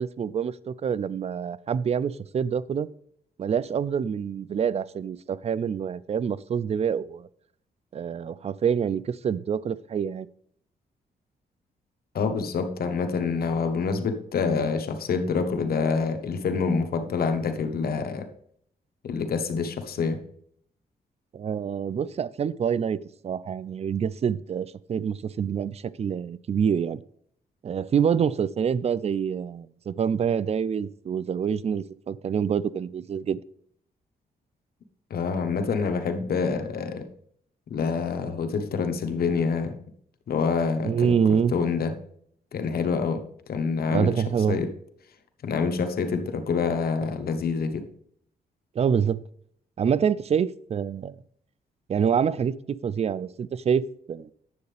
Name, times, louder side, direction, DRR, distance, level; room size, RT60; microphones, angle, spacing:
voice 1, 0.0-2.9 3.4-7.3 7.9-10.3 21.3-23.0 23.2-27.0 27.6-33.4 40.8-41.5 43.9-44.6 48.8-49.2 49.8-51.2 51.9-54.3, right 7 dB, 40° right, 0.4 m, -26 dB
voice 2, 12.1-18.3 19.0-20.2 35.1-37.1 37.7-39.7 40.3-41.9 42.5-43.2 43.5-44.7 45.4-47.9, left 5 dB, 70° left, 1.0 m, -27 dB
9.6 x 7.6 x 3.3 m
cardioid pair, 90°, 16 cm